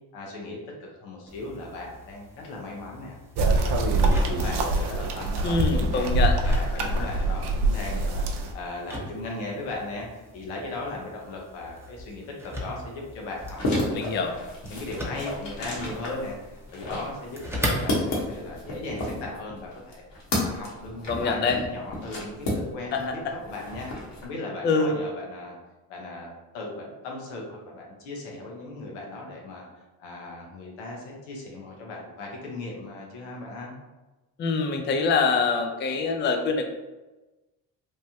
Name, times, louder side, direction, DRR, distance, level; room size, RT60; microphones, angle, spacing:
voice 1, 0.1-6.1 6.4-14.0 14.2-20.0 20.3-23.9 24.2-25.6 25.9-29.7 30.0-33.7, left 2 dB, 85° left, -1 dB, 0.9 m, -37 dB
sound 1, 1.3-18.3, equal, 5° right, 0.7 m, -39 dB
sound 2, 3.4-8.5, right 2 dB, 55° right, 0.6 m, -24 dB
voice 2, 5.4-6.4 6.8-6.9 13.9-14.3 21.1-21.6 22.9-23.1 24.6-25.0 34.4-36.6, left 4 dB, 25° left, 4 dB, 0.4 m, -24 dB
sound 3, 13.4-23.1 23.4-24.2, left 1 dB, 60° left, 1.1 m, -32 dB
3.3 x 2.2 x 2.7 m, 1.1 s
supercardioid pair, 65°, 49 cm